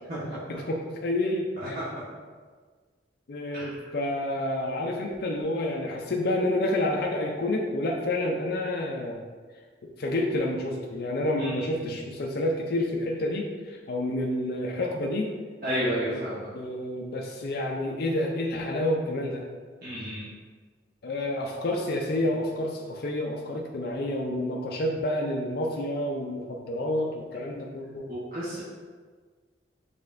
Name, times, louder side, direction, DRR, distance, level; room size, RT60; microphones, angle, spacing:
voice 1, 0.5-1.8 3.3-9.2 9.8-15.4 16.1-16.2 16.5-19.4 21.0-28.1, left 1 dB, 55° left, 0 dB, 0.4 m, -29 dB
voice 2, 3.5-3.9 11.4-12.0 15.6-16.4 19.8-20.3 28.1-28.6, equal, 50° right, -11 dB, 1.2 m, -32 dB
5.9 x 3.3 x 2.5 m, 1.5 s
head